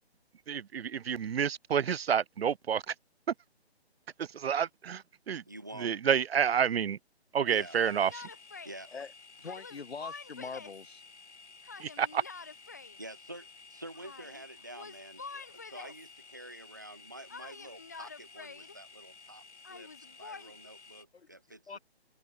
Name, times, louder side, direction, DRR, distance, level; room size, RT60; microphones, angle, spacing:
voice 1, 0.5-2.9 4.2-5.4 5.8-7.0 7.3-8.1 11.8-12.2, right 8 dB, 65° right, 0.5 m, -29 dB
voice 2, 5.5-6.0 7.5-7.8 8.6-8.9 13.0-21.8, right 1 dB, 20° right, 0.6 m, -48 dB
sound 1, 7.5-21.0, left 4 dB, 90° left, 2.5 m, -54 dB
Yell, 7.8-8.8 9.4-10.8 11.6-13.0 13.9-14.4 14.7-16.1 17.3-18.7 19.6-20.5, left 4 dB, 15° left, 0.7 m, -47 dB
voice 3, 9.4-11.0 21.1-21.3 21.7-21.8, left 5 dB, 70° left, 2.1 m, -43 dB
hypercardioid pair, 170°, 33 cm